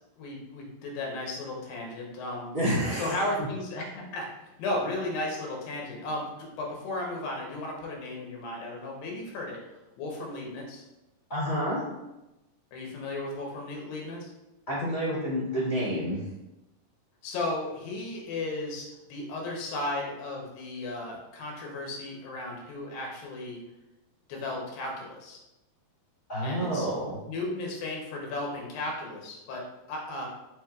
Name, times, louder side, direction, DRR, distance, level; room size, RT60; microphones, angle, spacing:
voice 1, 0.2-2.5 2.9-4.3 4.6-9.6 10.0-10.8 12.7-14.3 17.2-23.6 24.3-25.4 26.4-26.9 27.3-30.3, left 2 dB, 80° left, -1 dB, 2.7 m, -35 dB
voice 2, 2.5-3.3 11.3-11.8 14.7-16.3 26.3-27.2, equal, 55° left, -11 dB, 0.7 m, -29 dB
6.2 x 3.0 x 2.4 m, 0.98 s
omnidirectional pair, 4.0 m